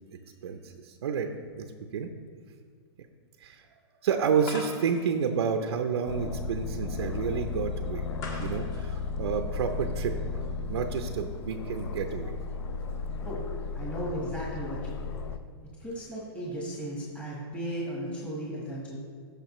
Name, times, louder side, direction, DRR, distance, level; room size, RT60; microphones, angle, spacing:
voice 1, 0.1-2.1 3.4-3.7 4.0-8.1 8.4-10.4 10.7-12.3, right 6 dB, 75° right, 5 dB, 0.6 m, -30 dB
sound 1, 4.4-10.1, left 3 dB, 30° left, 1.4 m, -45 dB
Aircraft, 6.1-15.4, left 4 dB, 90° left, 0.6 m, -35 dB
voice 2, 13.7-15.1 15.8-19.0, right 1 dB, 10° left, -5 dB, 1.4 m, -36 dB
13.5 x 5.2 x 3.1 m, 2.1 s
hypercardioid pair, 155°, 14 cm